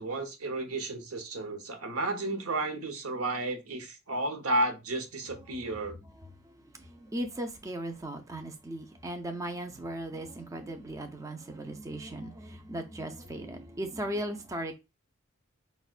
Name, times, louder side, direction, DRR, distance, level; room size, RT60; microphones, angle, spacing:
voice 1, 0.0-6.0, right 2 dB, 85° right, 0.8 m, -32 dB
voice 2, 6.7-14.8, right 1 dB, 15° right, 0.3 m, -37 dB
5.0 x 2.1 x 2.3 m
head